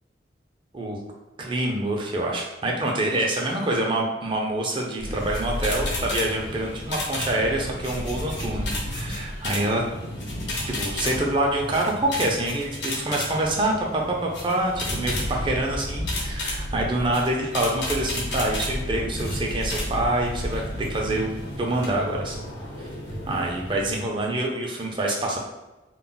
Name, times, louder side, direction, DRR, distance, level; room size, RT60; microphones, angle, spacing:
voice 1, 1.4-9.8 10.6-20.6 20.9-22.4 23.3-25.4, right 1 dB, 30° right, -1 dB, 0.5 m, -26 dB
sound 1, 5.0-24.1, left 1 dB, 80° left, 0.7 m, -32 dB
2.2 x 2.0 x 3.7 m, 1.1 s
head